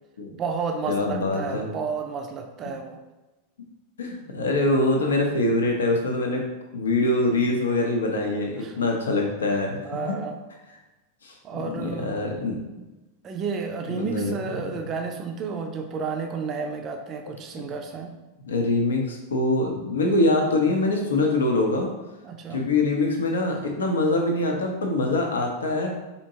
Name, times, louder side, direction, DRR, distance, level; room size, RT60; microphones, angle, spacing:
voice 1, 0.3-3.0 8.6-8.8 9.8-10.4 11.4-12.1 13.2-18.1 22.2-22.6, right 5 dB, 30° right, 4 dB, 0.4 m, -31 dB
voice 2, 0.9-1.7 4.0-6.4 6.7-10.0 11.2-11.3 11.6-12.8 13.9-14.3 14.6-14.8 18.5-21.9 22.5-26.0, left 2 dB, 70° left, 1 dB, 0.6 m, -24 dB
4.3 x 2.7 x 2.8 m, 1.1 s
figure-of-eight pair, 90°, 0 cm